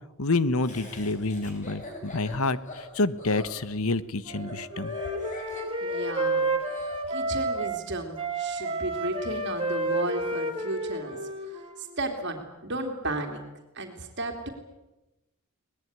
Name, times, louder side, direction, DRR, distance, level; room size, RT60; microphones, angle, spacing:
voice 1, 0.2-5.0, left 3 dB, 75° left, 16 dB, 1.1 m, -28 dB
Laughter, 0.6-7.0, left 1 dB, 35° left, 5.8 m, -42 dB
Wind instrument woodwind instrument, 4.2-7.8 8.2-11.9, right 2 dB, 25° right, 3.7 m, -30 dB
voice 2, 5.8-6.6 7.1-11.2 11.5-13.4 13.7-14.5, right 2 dB, 55° right, 4 dB, 3.2 m, -34 dB
23.5 x 19.5 x 9.6 m, 1.0 s
head